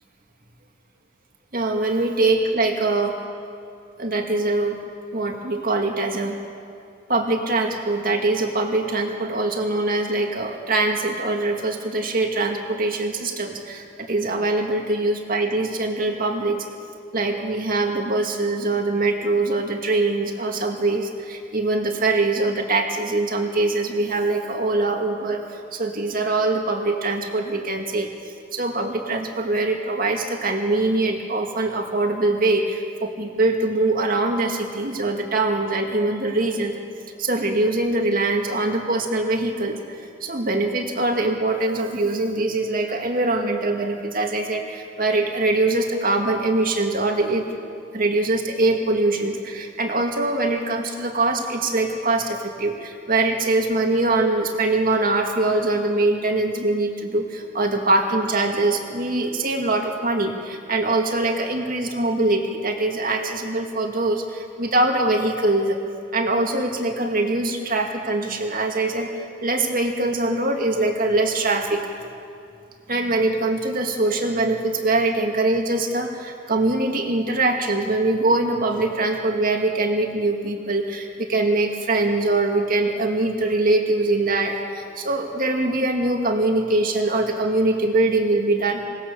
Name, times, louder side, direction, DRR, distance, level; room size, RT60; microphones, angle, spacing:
voice 1, 1.5-3.2 4.0-4.8 5.1-6.4 7.1-16.7 17.1-28.1 28.5-36.8 37.2-47.5 47.9-65.8 66.1-71.9 72.9-88.8, right 2 dB, 45° right, 3 dB, 2.2 m, -23 dB
25.0 x 19.0 x 7.0 m, 2.4 s
head